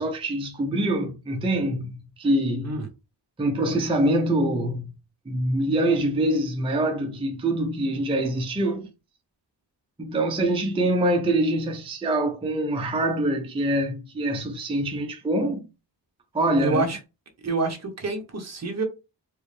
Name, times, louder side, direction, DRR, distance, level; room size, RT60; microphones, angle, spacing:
voice 1, 0.0-2.8 3.4-4.9 5.3-8.9 10.0-15.6 16.3-16.8, right 1 dB, 15° right, 0.5 m, -24 dB
voice 2, 16.6-17.0 17.4-18.8, right 3 dB, 35° right, 0.9 m, -27 dB
4.5 x 2.1 x 3.2 m
wide cardioid pair, 150°, 44 cm